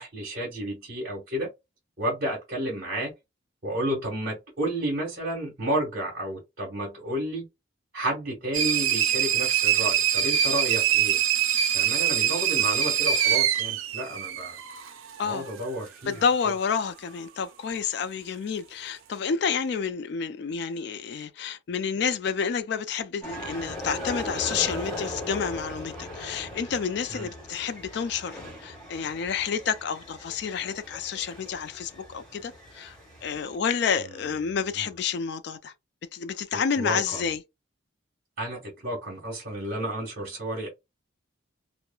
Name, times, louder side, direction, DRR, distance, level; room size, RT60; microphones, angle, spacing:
voice 1, 0.0-1.5 2.0-3.1 3.6-7.5 7.9-11.2 11.7-14.6 15.2-16.2 27.1-27.3 34.0-34.1 34.7-34.9 36.5-37.3 38.4-40.7, right 1 dB, 50° right, 1.2 m, -31 dB
sound 1, 8.5-14.9, right 10 dB, 90° right, 0.5 m, -24 dB
voice 2, 16.1-33.0 33.2-35.7 36.1-37.4, left 6 dB, 55° left, 0.3 m, -29 dB
sound 2, 23.2-33.6, left 1 dB, 5° left, 1.3 m, -39 dB
3.0 x 2.1 x 2.2 m
head